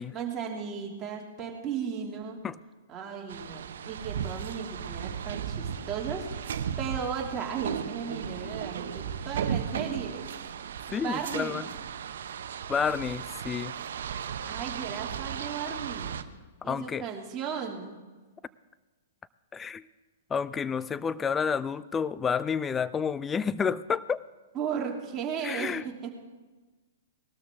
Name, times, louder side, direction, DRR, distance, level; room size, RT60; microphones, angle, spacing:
voice 1, 0.1-2.4 2.9-11.7 14.5-16.2 16.6-18.0 24.5-26.1, right 7 dB, 25° right, -1 dB, 2.9 m, -36 dB
sound 1, 3.3-16.2, right 8 dB, 70° right, 0.8 m, -36 dB
voice 2, 10.9-11.6 12.7-13.7 16.6-17.1 19.5-19.8 20.3-24.2 25.4-25.8, left 6 dB, 15° left, 18 dB, 0.4 m, -30 dB
20.0 x 13.0 x 3.8 m, 1.3 s
hypercardioid pair, 120°, 0 cm